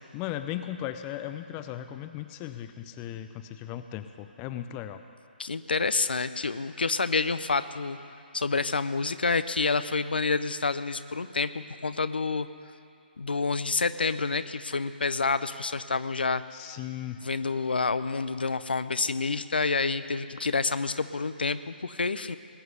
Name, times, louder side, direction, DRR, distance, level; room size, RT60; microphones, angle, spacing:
voice 1, 0.1-5.0 16.5-17.2, left 12 dB, 20° left, 10 dB, 0.4 m, -37 dB
voice 2, 5.4-8.0 8.3-12.5 13.2-16.4 17.2-22.4, left 4 dB, 70° left, 13 dB, 0.6 m, -28 dB
20.0 x 7.9 x 8.1 m, 2.5 s
figure-of-eight pair, 140°, 6 cm